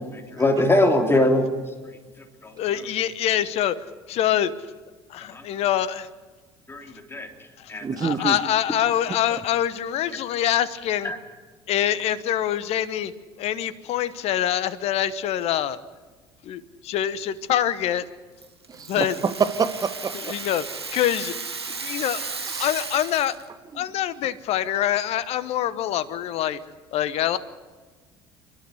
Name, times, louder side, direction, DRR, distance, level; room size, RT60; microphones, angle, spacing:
voice 1, 0.1-1.5 2.4-2.5 5.3-5.4 6.7-7.3 7.7-7.9 11.0-11.2, left 1 dB, 15° left, 3 dB, 3.3 m, -21 dB
voice 2, 2.6-3.8 4.1-4.5 5.1-6.1 7.6-7.7 8.0-11.1 11.7-13.1 13.4-15.8 16.4-18.0 18.9-19.1 20.3-20.6 20.9-21.3 21.7-23.3 23.7-26.6 26.9-27.4, left 11 dB, 50° left, 15 dB, 1.1 m, -25 dB
voice 3, 7.8-8.4 18.7-20.3 22.4-22.7, right 5 dB, 30° right, 11 dB, 1.5 m, -26 dB
Rattle (instrument), 18.4-23.5, right 4 dB, 90° right, 1.2 m, -34 dB
29.0 x 12.5 x 9.8 m, 1.3 s
figure-of-eight pair, 60°, 13 cm